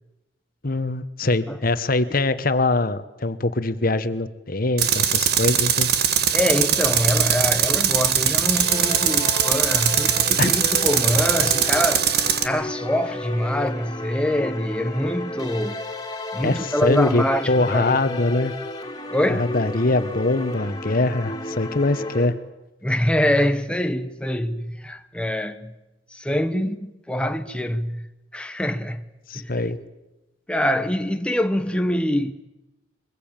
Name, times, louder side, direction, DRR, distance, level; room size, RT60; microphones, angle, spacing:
voice 1, 0.6-5.9 10.4-10.5 16.4-18.6 19.3-22.4 29.3-29.8, left 2 dB, 55° left, 1.2 m, -23 dB
Tools, 4.8-12.5, right 9 dB, 60° right, 1.5 m, -21 dB
voice 2, 6.3-12.1 12.4-15.8 16.3-18.0 19.1-19.5 22.8-25.8 26.1-28.1 28.3-29.0 29.3-29.5 30.5-32.3, left 1 dB, 5° left, 0.9 m, -24 dB
sound 1, 8.5-22.3, left 2 dB, 25° left, 3.0 m, -33 dB
24.0 x 20.5 x 9.0 m
head